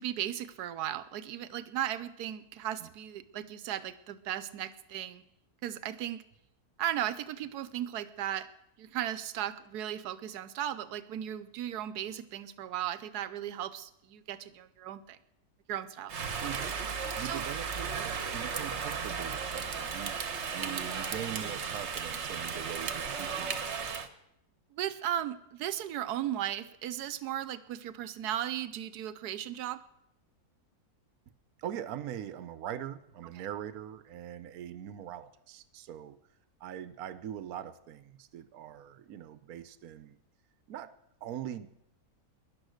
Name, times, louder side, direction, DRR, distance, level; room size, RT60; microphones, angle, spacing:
voice 1, 0.0-5.2 5.6-6.2 6.8-8.5 8.8-15.2 15.7-16.1 17.2-17.4 24.7-29.8, right 11 dB, 90° right, 14 dB, 1.3 m, -36 dB
Rain, 16.1-24.1, right 6 dB, 50° right, 1.3 m, -35 dB
sound 1, 16.4-19.0, right 7 dB, 10° left, 3.2 m, -61 dB
voice 2, 16.4-16.7 17.2-23.9 31.6-36.2 36.6-40.2 40.7-40.9 41.2-41.7, right 10 dB, 70° right, 13 dB, 1.2 m, -42 dB
17.0 x 11.0 x 6.4 m, 0.82 s
omnidirectional pair, 1.6 m